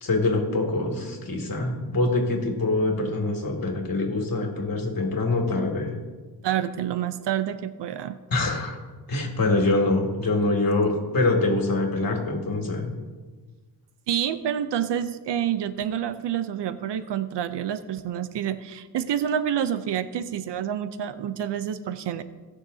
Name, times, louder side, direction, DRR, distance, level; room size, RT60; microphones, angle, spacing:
voice 1, 0.0-6.0 8.3-8.8 9.1-12.9, left 2 dB, 50° left, 1 dB, 2.5 m, -24 dB
voice 2, 6.4-8.2 14.1-22.2, right 9 dB, 70° right, 12 dB, 0.7 m, -28 dB
18.5 x 6.6 x 2.8 m, 1.4 s
cardioid pair, 75°, 44 cm